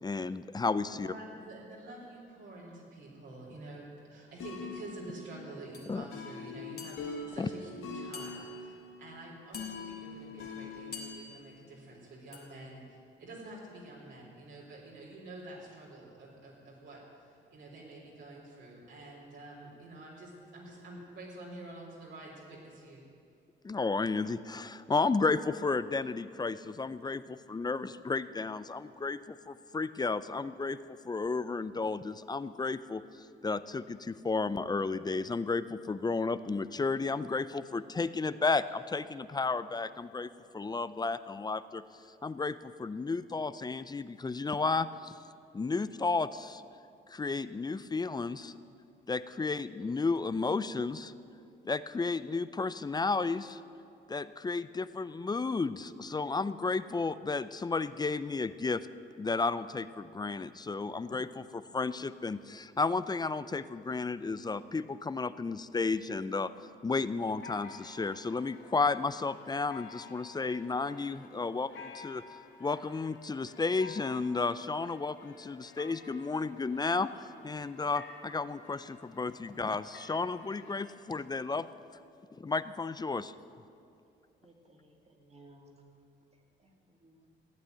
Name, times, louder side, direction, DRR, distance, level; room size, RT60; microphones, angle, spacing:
voice 1, 0.0-1.1 5.9-6.0 7.4-7.5 23.6-30.8 31.0-33.0 33.4-41.8 42.2-45.1 45.5-46.6 47.1-48.5 49.1-51.1 51.7-53.6 54.1-58.9 59.2-66.5 66.8-72.2 72.6-81.7 82.3-83.3, left 4 dB, 20° left, 14 dB, 0.5 m, -33 dB
voice 2, 0.9-23.1, right 2 dB, 70° right, -4 dB, 3.9 m, -48 dB
sound 1, 4.4-11.2, left 4 dB, 85° left, 2.0 m, -44 dB
sound 2, 5.7-6.0 6.8-7.3 8.1-8.8 9.5-10.2 10.9-11.6 12.3-12.7, left 4 dB, 50° left, 2.2 m, -48 dB
sound 3, 67.3-80.9, left 4 dB, 70° left, 1.7 m, -52 dB
voice 3, 84.4-85.7 86.6-87.3, right 1 dB, 35° right, 2 dB, 2.5 m, -59 dB
15.0 x 8.9 x 9.1 m, 2.4 s
cardioid pair, 90°, 20 cm